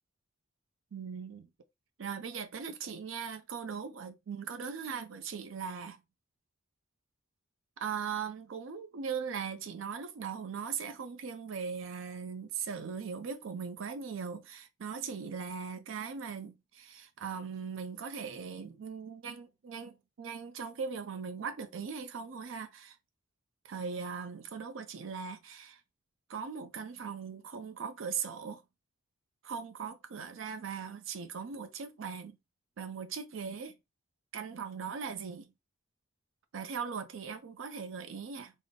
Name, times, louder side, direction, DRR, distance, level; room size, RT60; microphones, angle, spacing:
voice 1, 0.9-1.5 2.0-6.0 7.8-23.0 23.6-25.8 26.3-28.6 29.4-32.4 32.8-33.7 34.3-35.5 36.5-38.5, right 6 dB, 75° right, 0.5 m, -39 dB
3.4 x 2.0 x 3.8 m
head